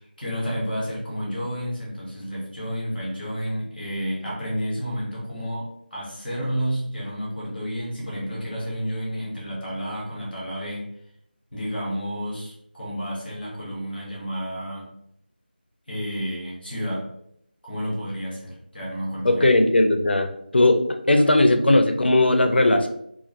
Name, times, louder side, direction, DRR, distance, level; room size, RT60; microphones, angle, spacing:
voice 1, 0.0-10.9 11.5-14.9 15.9-17.1 17.6-19.4 21.1-21.2, equal, ahead, -23 dB, 0.4 m, -31 dB
voice 2, 19.2-20.8 21.1-22.9, left 2 dB, 75° left, 6 dB, 0.4 m, -18 dB
2.2 x 2.0 x 3.1 m, 0.73 s
figure-of-eight pair, 180°, 6 cm